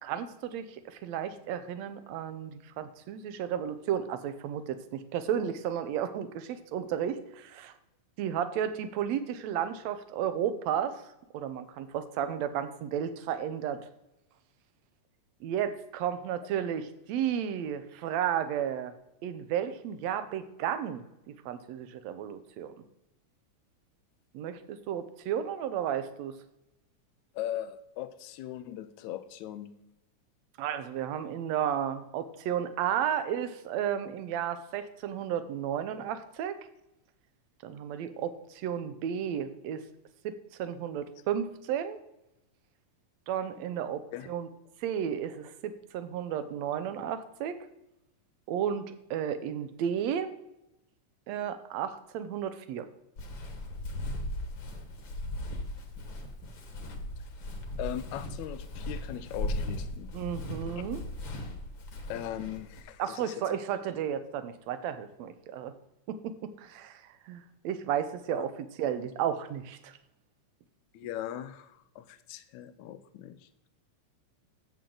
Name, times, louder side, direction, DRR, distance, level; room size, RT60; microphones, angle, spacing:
voice 1, 0.0-7.7 8.2-11.0 11.3-13.9 15.4-18.9 19.2-22.7 24.3-26.3 30.6-36.6 37.6-39.8 40.2-42.0 43.3-44.5 44.8-47.6 48.5-50.3 51.3-52.9 60.1-61.0 63.0-65.7 66.1-68.5 68.8-70.0, right 9 dB, 70° right, 11 dB, 1.9 m, -33 dB
voice 2, 27.4-29.7 44.1-44.3 57.8-60.1 62.1-63.4 68.3-68.5 70.9-73.7, left 12 dB, 80° left, 12 dB, 2.0 m, -39 dB
Walk footsteps, 53.2-62.8, left 1 dB, 50° left, 1.8 m, -38 dB
13.0 x 7.8 x 3.9 m, 0.87 s
omnidirectional pair, 3.5 m